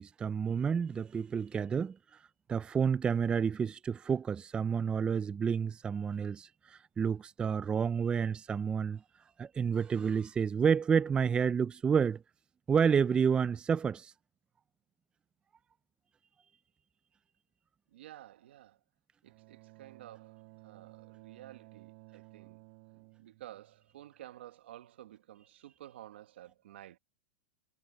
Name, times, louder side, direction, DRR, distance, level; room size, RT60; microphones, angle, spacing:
voice 1, 0.0-2.0 2.5-9.0 9.4-12.2 12.7-14.1, right 6 dB, 15° right, 0.4 m, -30 dB
voice 2, 17.9-18.8 19.2-22.6 23.2-27.0, right 13 dB, 80° right, 1.8 m, -52 dB
Bowed string instrument, 19.2-24.3, right 36 dB, 55° right, 6.1 m, -56 dB
supercardioid pair, 135°, 6 cm